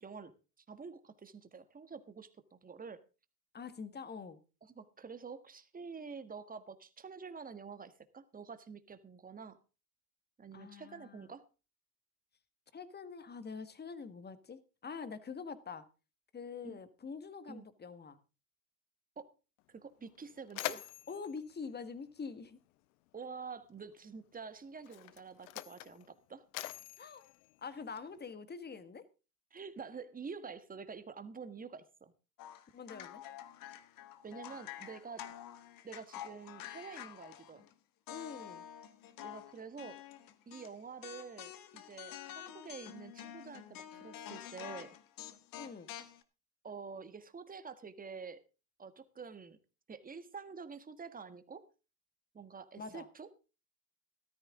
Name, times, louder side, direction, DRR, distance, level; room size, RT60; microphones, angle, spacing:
voice 1, 0.0-0.3 0.7-3.0 4.6-9.6 10.4-11.4 16.6-16.8 17.5-17.7 19.1-19.3 19.7-20.8 23.1-26.4 29.5-32.1 34.2-35.3 35.8-37.7 39.2-40.0 40.5-45.0 46.6-48.4 48.8-49.6 49.9-51.6 52.3-53.3, right 5 dB, 20° right, 11 dB, 1.6 m, -48 dB
voice 2, 3.5-4.4 10.5-11.3 12.7-15.8 16.3-18.2 20.7-22.6 27.0-27.2 27.6-29.0 32.7-33.2 38.1-38.6 45.6-45.9 52.8-53.1, left 5 dB, 20° left, 13 dB, 1.6 m, -45 dB
Mechanisms, 19.6-19.7 20.1-22.8 23.8-23.9 24.7-28.3, left 18 dB, 65° left, 0.9 m, -45 dB
sound 1, 32.4-37.7 38.1-40.7 41.0-46.2, left 11 dB, 45° left, 1.5 m, -48 dB
14.0 x 13.0 x 3.7 m, 0.32 s
hypercardioid pair, 90°, 47 cm